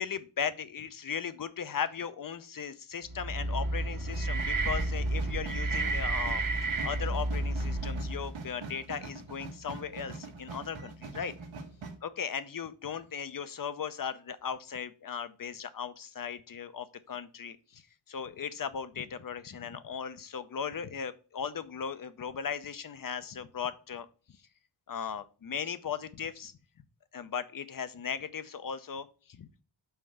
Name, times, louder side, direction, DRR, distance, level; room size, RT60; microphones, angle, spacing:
voice 1, 0.0-6.4 6.8-11.3 12.0-17.8 18.1-24.1 24.9-26.5 27.1-29.5, left 7 dB, 45° left, 13 dB, 0.6 m, -37 dB
sound 1, 3.1-8.4, right 2 dB, 45° right, 1.0 m, -31 dB
sound 2, 4.1-12.0, right 4 dB, 75° right, 1.3 m, -44 dB
5.7 x 4.4 x 6.3 m, 0.36 s
wide cardioid pair, 105°, 47 cm